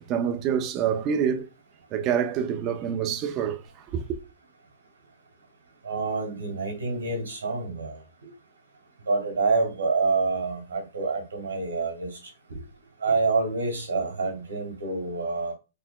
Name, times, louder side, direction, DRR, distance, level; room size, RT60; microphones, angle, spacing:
voice 1, 0.1-1.5 1.9-3.6 3.9-4.0, right 8 dB, 35° right, 0.7 m, -26 dB
voice 2, 5.8-8.3 9.1-12.2 12.5-12.6 13.0-15.5, right 3 dB, 90° right, 2.0 m, -27 dB
4.1 x 3.6 x 2.2 m
hypercardioid pair, 130°, 0 cm